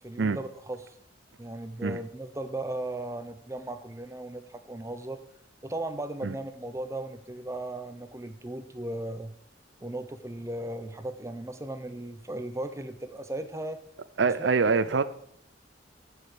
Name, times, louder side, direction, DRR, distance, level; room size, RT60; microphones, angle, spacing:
voice 1, 0.0-0.9 1.4-5.2 5.6-9.3 9.8-13.8 14.4-14.5, right 1 dB, 15° right, 0.7 m, -36 dB
voice 2, 14.2-15.0, right 4 dB, 75° right, 0.6 m, -24 dB
15.5 x 6.5 x 5.0 m
head